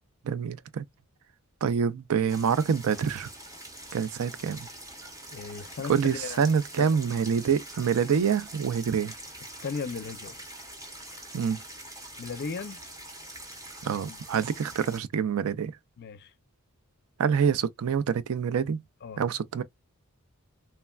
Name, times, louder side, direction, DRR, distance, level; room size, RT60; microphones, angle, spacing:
voice 1, 0.2-0.9 1.6-3.3 3.9-4.7 5.9-9.1 11.3-11.6 13.8-15.8 17.2-18.8 19.2-19.6, right 7 dB, 65° right, 0.4 m, -26 dB
sound 1, 2.3-15.0, right 1 dB, 15° right, 0.7 m, -44 dB
voice 2, 5.3-6.4 6.8-6.9 9.6-10.4 12.2-12.8 14.0-14.2 16.0-16.3 19.0-19.2, left 5 dB, 50° left, 0.5 m, -36 dB
3.2 x 2.2 x 2.2 m
head